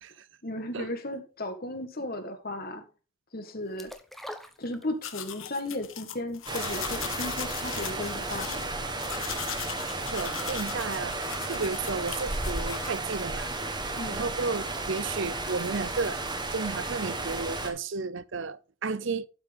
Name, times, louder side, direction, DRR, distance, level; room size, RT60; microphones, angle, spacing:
voice 1, 0.4-2.8 3.3-3.9 4.6-8.7 14.0-14.2, left 1 dB, 45° left, 1.9 m, -35 dB
sound 1, 3.8-5.3 5.7-5.8, equal, ahead, 0.9 m, -43 dB
sound 2, 5.0-12.9, left 9 dB, 65° left, 1.2 m, -39 dB
sound 3, 6.5-17.7, right 2 dB, 20° right, 1.4 m, -33 dB
voice 2, 10.0-11.1 11.5-13.5 13.8-16.2 16.5-19.3, right 4 dB, 55° right, 0.6 m, -33 dB
12.0 x 6.2 x 3.7 m
head